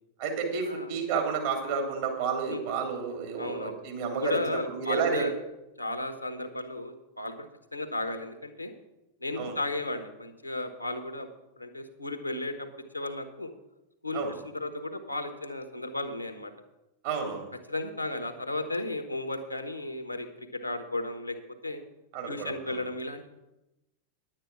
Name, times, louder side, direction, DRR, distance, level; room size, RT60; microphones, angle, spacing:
voice 1, 0.2-4.4 4.6-5.2 9.4-9.5 14.1-14.3 17.0-17.5 22.1-22.8, right 5 dB, 50° right, 3 dB, 2.9 m, -31 dB
voice 2, 3.4-3.7 4.1-5.3 5.8-7.5 7.7-8.7 9.2-11.3 11.6-12.7 12.9-13.5 14.0-14.2 14.5-16.5 17.7-21.4 21.6-21.8 22.3-23.2, left 2 dB, 85° left, 9 dB, 1.2 m, -34 dB
10.5 x 8.9 x 6.1 m, 0.94 s
figure-of-eight pair, 90°, 0 cm